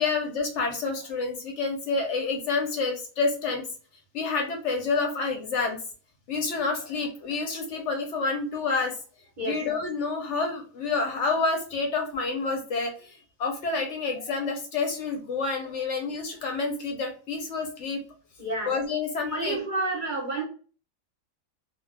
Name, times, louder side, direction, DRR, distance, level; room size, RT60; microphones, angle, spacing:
voice 1, 0.0-3.7 4.1-5.8 6.3-9.0 9.4-18.0 18.7-19.6, left 4 dB, 65° left, 2 dB, 0.9 m, -28 dB
voice 2, 18.4-18.7 19.3-20.4, right 2 dB, 45° right, -2 dB, 0.8 m, -29 dB
2.3 x 2.3 x 3.2 m, 0.39 s
omnidirectional pair, 1.5 m